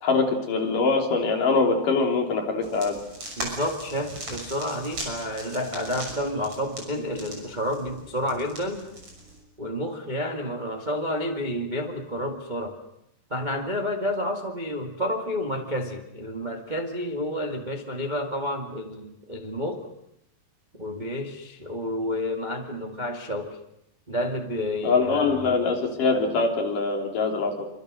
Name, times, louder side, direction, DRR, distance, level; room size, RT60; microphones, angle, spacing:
voice 1, 0.0-3.0 24.8-27.6, left 4 dB, 50° left, 2 dB, 4.6 m, -23 dB
sound 1, 2.6-9.4, right 1 dB, 30° right, 7.2 m, -39 dB
voice 2, 3.4-8.9 9.6-12.8 13.3-19.9 20.7-23.6 24.1-25.5, left 1 dB, 60° right, 2 dB, 0.4 m, -30 dB
26.5 x 25.5 x 6.6 m, 0.81 s
omnidirectional pair, 5.0 m